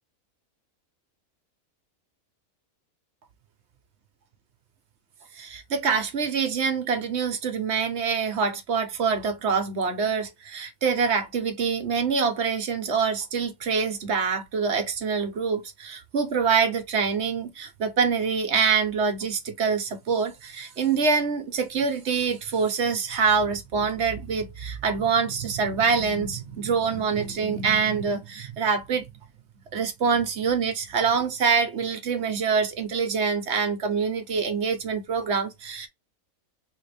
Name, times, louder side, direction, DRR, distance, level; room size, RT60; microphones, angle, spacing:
voice 1, 5.4-29.1 29.7-35.9, right 5 dB, 60° right, 1.0 m, -25 dB
3.9 x 2.6 x 3.3 m
omnidirectional pair, 1.5 m